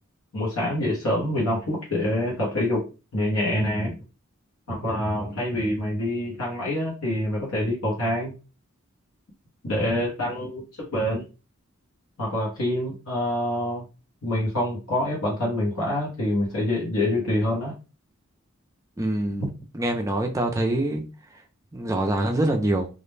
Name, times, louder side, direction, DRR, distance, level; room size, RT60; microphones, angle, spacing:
voice 1, 0.3-2.8 3.1-4.0 4.7-8.3 9.6-11.3 12.2-13.8 14.2-17.7, left 1 dB, 90° left, 0.9 m, -26 dB
voice 2, 19.0-19.5 19.7-21.0 21.3-21.4 21.7-22.9, right 1 dB, 15° right, 0.3 m, -25 dB
2.4 x 2.1 x 3.1 m
head